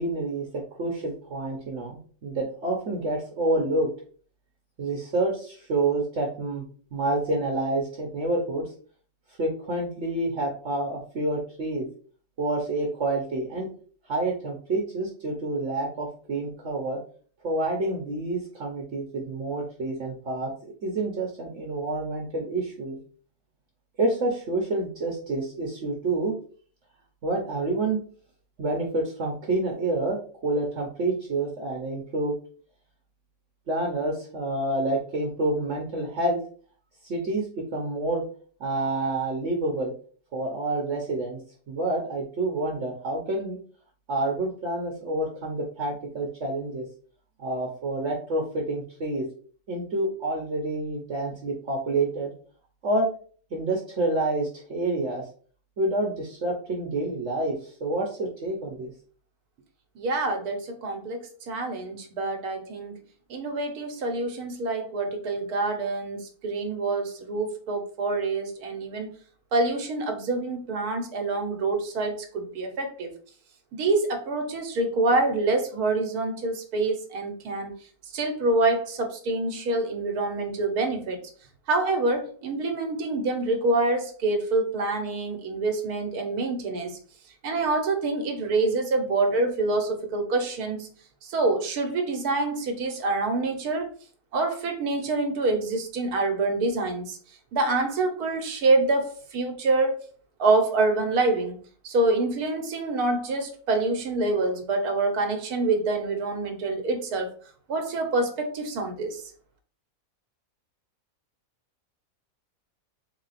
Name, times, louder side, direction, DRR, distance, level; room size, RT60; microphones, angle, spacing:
voice 1, 0.0-3.9 4.8-6.6 6.9-8.7 9.4-11.9 12.4-13.7 14.1-17.0 17.4-20.5 20.8-23.0 24.0-26.3 27.2-28.0 28.6-32.3 33.7-36.4 37.0-38.3 38.6-39.9 40.3-41.4 41.7-43.6 44.1-46.8 47.4-49.2 49.7-52.3 52.8-53.1 53.5-55.2 55.8-58.9, right 2 dB, 55° right, -1 dB, 1.1 m, -28 dB
voice 2, 60.0-63.0 63.3-69.1 69.5-73.1 73.7-77.7 78.1-81.2 81.7-87.0 87.4-90.9 91.2-93.9 94.3-97.2 97.5-100.0 100.4-101.6 101.8-107.3 107.7-109.2, right 2 dB, 85° right, 5 dB, 1.4 m, -26 dB
4.0 x 2.3 x 4.0 m, 0.43 s
omnidirectional pair, 1.6 m